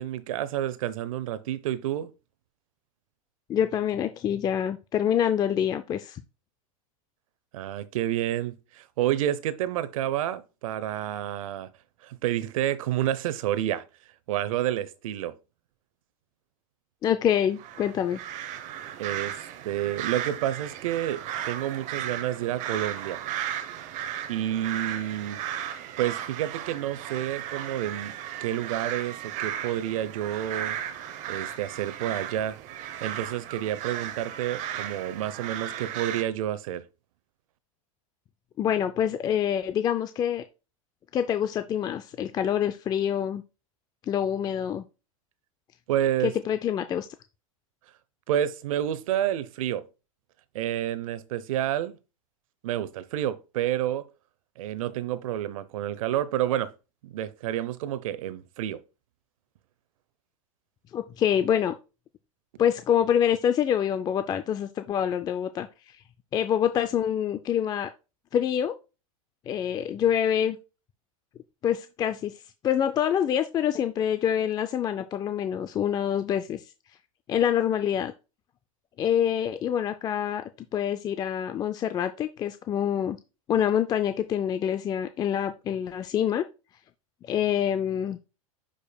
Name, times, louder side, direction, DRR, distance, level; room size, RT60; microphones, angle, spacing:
voice 1, 0.0-2.1 7.5-11.7 12.0-13.8 14.3-15.3 19.0-19.4 19.6-21.2 21.4-23.2 24.3-25.4 26.0-28.1 28.4-30.8 31.3-32.6 33.0-36.8 45.9-46.3 48.3-49.8 50.5-52.0 52.6-54.0 54.6-56.7 57.0-58.8, right 12 dB, 70° right, 0.7 m, -29 dB
voice 2, 3.5-6.2 17.0-18.2 38.6-40.4 41.1-43.4 44.1-44.8 46.2-47.1 60.9-61.7 62.6-65.7 66.3-67.9 68.3-68.7 69.5-70.6 71.6-72.3 72.6-76.6 77.3-78.1 79.0-80.4 80.7-83.2 83.5-86.4 87.2-88.2, left 9 dB, 20° left, 0.4 m, -26 dB
sound 1, 17.6-36.2, right 10 dB, 40° right, 0.8 m, -35 dB
10.0 x 5.1 x 2.3 m
supercardioid pair, 125°, 18 cm